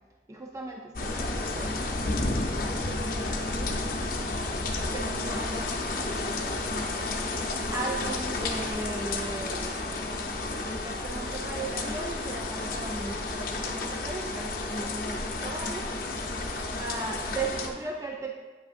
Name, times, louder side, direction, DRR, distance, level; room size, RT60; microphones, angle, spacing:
voice 1, 0.3-2.0 2.7-3.9 4.5-6.4 7.7-15.9 16.8-18.3, right 2 dB, 20° right, 1 dB, 0.3 m, -37 dB
sound 1, 0.9-17.7, left 2 dB, 50° left, 0.6 m, -31 dB
8.5 x 5.9 x 2.5 m, 1.4 s
head